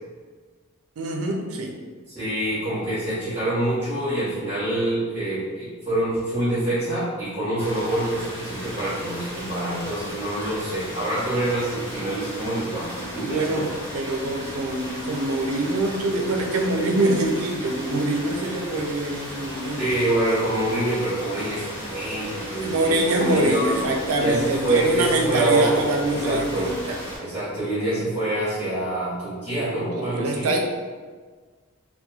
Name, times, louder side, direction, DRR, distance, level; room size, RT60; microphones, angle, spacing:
voice 1, 1.0-1.8 13.2-19.8 22.6-27.0 30.0-30.6, right 2 dB, 75° right, 2 dB, 0.4 m, -24 dB
voice 2, 2.1-13.6 19.8-23.8 24.2-25.8 26.1-26.7 27.2-30.5, right 1 dB, 20° right, -15 dB, 1.0 m, -26 dB
sound 1, 7.6-27.2, equal, 20° left, 1.5 m, -36 dB
2.9 x 2.2 x 2.3 m, 1.5 s
head